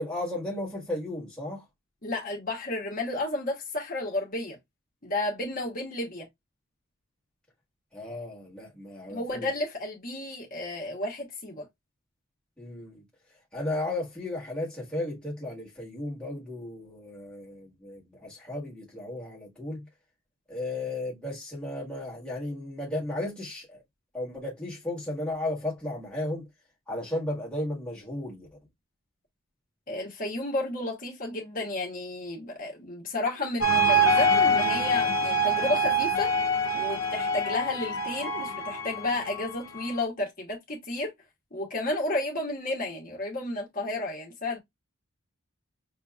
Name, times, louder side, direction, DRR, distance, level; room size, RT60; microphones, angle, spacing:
voice 1, 0.0-1.6 7.9-9.5 12.6-13.0 13.5-19.8 20.5-23.8 24.1-26.5 26.9-28.5, left 1 dB, 5° left, 1.4 m, -34 dB
voice 2, 2.0-4.6 5.0-6.3 9.1-11.6 29.9-36.3 36.7-41.1 41.5-44.6, left 2 dB, 40° left, 1.1 m, -32 dB
sound 1, 33.6-40.0, right 1 dB, 75° left, 0.6 m, -25 dB
5.9 x 2.9 x 2.3 m
head